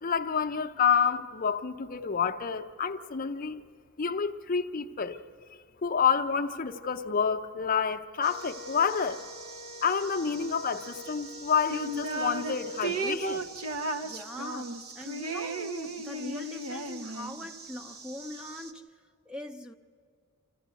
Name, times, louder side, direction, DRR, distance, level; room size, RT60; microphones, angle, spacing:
voice 1, 0.0-3.6 4.0-5.2 5.8-9.2 9.8-13.4, left 6 dB, 40° left, 0.6 m, -28 dB
sound 1, 8.2-18.7, right 4 dB, 50° right, 1.0 m, -47 dB
Wind instrument woodwind instrument, 8.2-13.0, left 5 dB, 65° right, 3.9 m, -48 dB
sound 2, 11.7-12.5 12.8-17.5, right 2 dB, 90° right, 0.9 m, -34 dB
voice 2, 14.0-18.9 19.3-19.7, left 1 dB, 5° right, 0.5 m, -41 dB
25.5 x 15.0 x 8.2 m
head